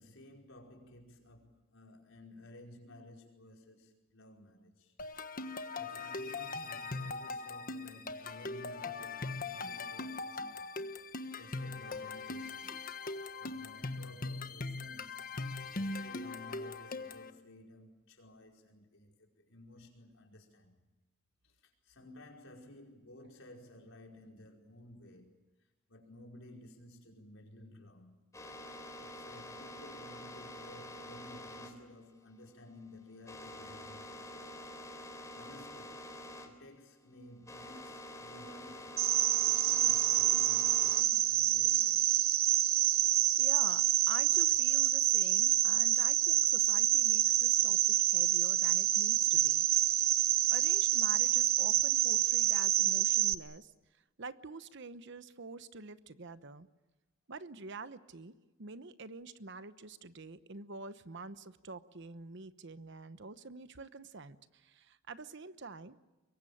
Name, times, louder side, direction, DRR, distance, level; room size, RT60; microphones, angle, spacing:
voice 1, 0.0-4.9 5.7-10.7 11.4-12.9 13.4-15.3 15.7-20.8 21.4-25.3 25.9-28.2 29.0-34.6 35.3-36.0 36.4-39.0 39.4-42.1, left 1 dB, 80° left, 5.1 m, -55 dB
sound 1, 5.0-17.3, left 3 dB, 45° left, 1.4 m, -40 dB
sound 2, 28.3-36.5 36.8-41.1 41.5-43.3, left 1 dB, 15° left, 3.6 m, -48 dB
Cricket, 39.0-53.3, right 12 dB, 90° right, 0.9 m, -27 dB
voice 2, 43.4-49.6 50.5-53.7 54.2-56.7 57.3-58.3 58.6-66.0, right 3 dB, 65° right, 1.0 m, -47 dB
24.5 x 23.0 x 8.7 m
head